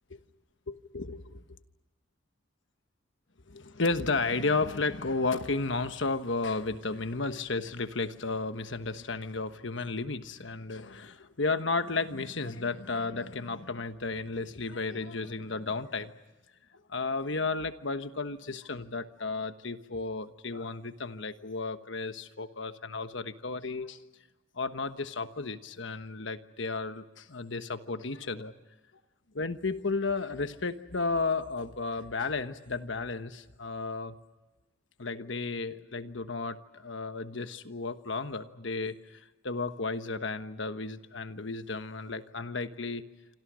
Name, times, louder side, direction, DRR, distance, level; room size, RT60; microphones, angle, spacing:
voice 1, 0.7-1.4 3.5-16.1 16.9-24.0 24.5-28.5 29.3-34.1 35.0-43.0, left 3 dB, 65° left, 10 dB, 1.3 m, -33 dB
27.5 x 26.5 x 6.3 m, 1.1 s
head